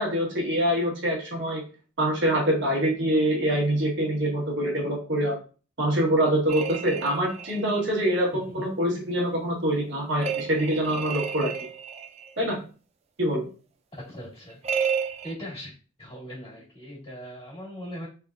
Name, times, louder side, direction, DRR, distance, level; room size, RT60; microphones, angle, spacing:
voice 1, 0.0-1.6 2.0-5.3 5.8-11.5 12.4-12.6 13.2-13.5, right 1 dB, 60° right, -2 dB, 1.4 m, -25 dB
sound 1, 6.5-7.8 10.2-12.3 14.6-15.3, right 6 dB, 30° right, 0.3 m, -31 dB
voice 2, 13.9-14.6 15.2-15.7 16.0-18.1, equal, 30° left, -5 dB, 2.0 m, -39 dB
3.7 x 3.4 x 2.4 m, 0.37 s
head